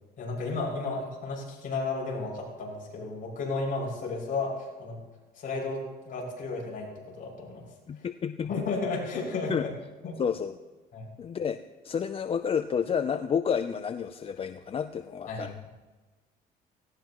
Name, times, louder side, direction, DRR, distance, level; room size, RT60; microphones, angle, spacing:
voice 1, 0.2-5.0 5.3-7.7 8.0-8.1 8.5-9.7 10.0-10.2 10.9-11.1 15.3-15.5, left 3 dB, 55° left, -1 dB, 6.4 m, -33 dB
voice 2, 7.9-8.6 9.5-9.7 10.2-10.6 11.2-11.6 11.8-15.5, left 7 dB, 35° left, 10 dB, 0.5 m, -30 dB
18.0 x 17.5 x 3.0 m, 1.2 s
cardioid pair, 110°, 17 cm